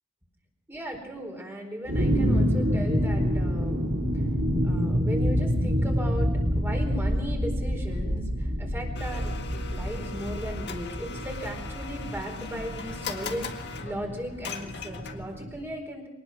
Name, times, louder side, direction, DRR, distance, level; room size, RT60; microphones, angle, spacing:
voice 1, 0.7-3.9 4.6-6.3 6.6-16.1, equal, 10° right, 2 dB, 4.4 m, -37 dB
sound 1, 1.9-15.5, equal, 55° right, 3.4 m, -27 dB
Domestic sounds home sounds, 8.9-15.4, left 5 dB, 55° left, 1.8 m, -40 dB
24.0 x 19.0 x 6.1 m, 0.96 s
head